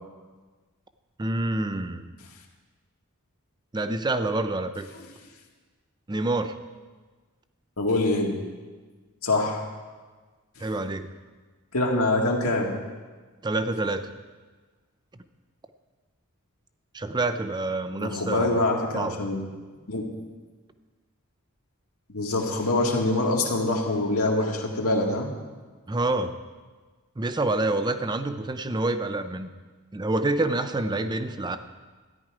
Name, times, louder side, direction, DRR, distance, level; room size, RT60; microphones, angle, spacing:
voice 1, 1.2-2.0 3.7-4.9 6.1-6.5 10.6-11.1 13.4-14.1 16.9-18.6 18.9-19.2 25.9-26.3 27.2-29.5 29.9-31.6, right 2 dB, 20° right, 10 dB, 0.5 m, -27 dB
voice 2, 7.8-8.3 9.2-9.6 10.6-10.7 11.7-12.7 18.0-19.4 19.9-20.0 22.1-25.3, left 2 dB, 80° left, 0 dB, 2.0 m, -25 dB
13.5 x 10.5 x 4.9 m, 1.4 s
head